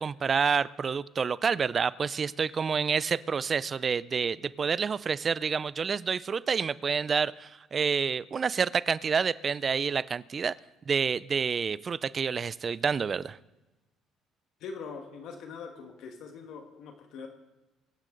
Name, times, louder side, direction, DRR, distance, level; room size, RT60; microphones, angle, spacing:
voice 1, 0.0-10.6 10.9-13.4, right 6 dB, 40° right, 19 dB, 0.5 m, -28 dB
voice 2, 14.6-17.3, left 5 dB, 70° left, 4 dB, 1.7 m, -42 dB
24.0 x 9.7 x 3.9 m, 1.1 s
cardioid pair, 95°, 0 cm